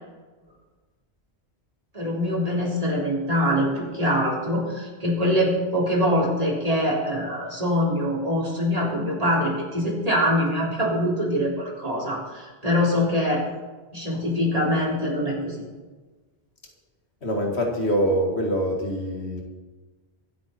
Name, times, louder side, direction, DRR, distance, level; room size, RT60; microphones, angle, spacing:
voice 1, 1.9-13.4 13.9-15.6, equal, 35° right, -3 dB, 3.7 m, -24 dB
voice 2, 17.2-19.4, equal, 75° left, 1 dB, 2.3 m, -24 dB
24.5 x 8.8 x 4.3 m, 1.3 s
omnidirectional pair, 1.1 m